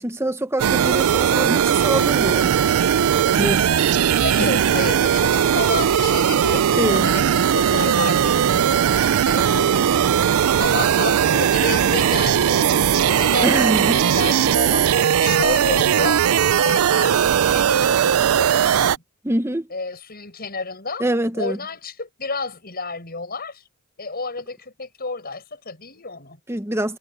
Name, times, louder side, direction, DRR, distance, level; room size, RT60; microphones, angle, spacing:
voice 1, 0.0-2.5 3.4-3.7 4.4-4.5 6.8-7.1 13.4-14.0 19.2-19.7 21.0-21.6 26.5-27.0, right 1 dB, 10° right, 1.0 m, -24 dB
sound 1, 0.6-19.0, right 8 dB, 75° right, 0.4 m, -18 dB
voice 2, 4.2-10.1 10.6-16.2 16.6-19.0 19.7-21.0 21.4-23.6 24.0-26.4, left 4 dB, 45° left, 6.6 m, -31 dB
head